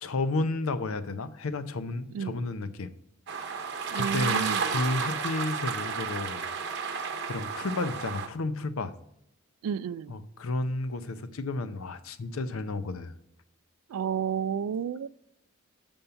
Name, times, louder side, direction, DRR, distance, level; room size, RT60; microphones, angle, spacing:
voice 1, 0.0-2.9 3.3-3.7 3.9-6.8 7.3-8.9 10.1-13.2, left 2 dB, 75° left, 0.6 m, -32 dB
sound 1, 3.3-8.3, right 5 dB, 55° right, 0.8 m, -32 dB
voice 2, 3.9-4.7 9.6-10.2 13.9-15.1, right 7 dB, 85° right, 0.3 m, -31 dB
7.0 x 5.3 x 5.6 m
head